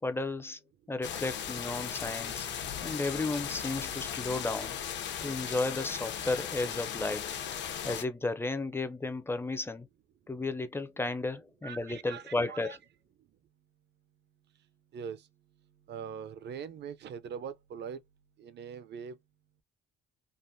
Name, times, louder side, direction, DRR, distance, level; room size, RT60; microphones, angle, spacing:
voice 1, 0.0-0.6 0.9-2.5 2.8-4.8 5.2-7.4 7.8-9.9 10.3-12.8, left 2 dB, 10° left, 0.5 m, -33 dB
sound 1, 1.0-8.0, left 8 dB, 65° left, 0.7 m, -37 dB
voice 2, 11.6-12.8 14.9-15.3 15.9-18.0 18.4-19.2, right 7 dB, 60° right, 0.6 m, -42 dB
3.7 x 2.1 x 2.6 m
cardioid pair, 90°, 20 cm